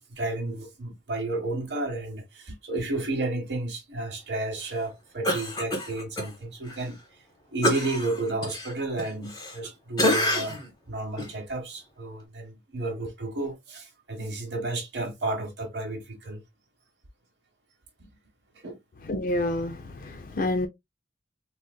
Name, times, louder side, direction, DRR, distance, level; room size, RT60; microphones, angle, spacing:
voice 1, 0.0-7.0 7.5-10.6 10.9-16.4 18.6-18.8, right 2 dB, 70° right, 1.0 m, -32 dB
Cough, 5.2-6.3 6.7-6.8 7.6-9.7 10.0-10.7 11.2-11.3, left 1 dB, 20° left, 0.9 m, -27 dB
voice 2, 19.1-20.7, left 1 dB, 45° left, 0.4 m, -28 dB
3.9 x 2.4 x 2.3 m
head